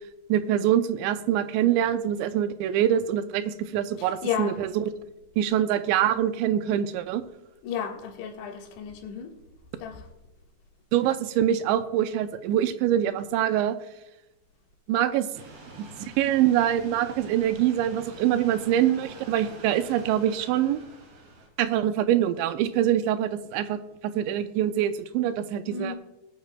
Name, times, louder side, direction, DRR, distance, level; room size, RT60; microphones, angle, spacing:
voice 1, 0.3-4.9 5.4-7.2 10.9-13.8 14.9-15.3 15.8-20.8 21.6-25.9, right 11 dB, 85° right, 2.9 m, -24 dB
voice 2, 4.0-4.6 7.6-9.4 9.8-10.1 25.7-26.0, left 7 dB, 85° left, 3.9 m, -33 dB
sound 1, 15.3-21.5, right 2 dB, 70° right, 4.4 m, -46 dB
22.0 x 9.1 x 2.2 m
omnidirectional pair, 5.1 m